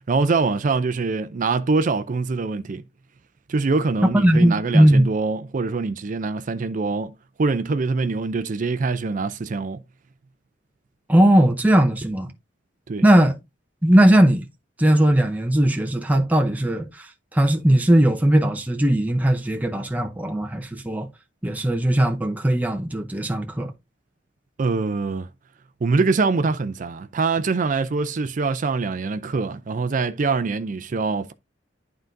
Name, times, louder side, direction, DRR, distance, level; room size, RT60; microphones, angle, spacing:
voice 1, 0.0-2.8 3.5-7.1 7.4-9.8 12.9-13.1 24.6-25.3 25.8-31.3, right 4 dB, 45° right, 0.4 m, -24 dB
voice 2, 4.0-5.1 11.1-12.3 13.0-13.4 13.8-14.4 14.8-21.1 21.4-23.7, right 1 dB, 10° right, 0.7 m, -18 dB
11.0 x 3.8 x 2.6 m
head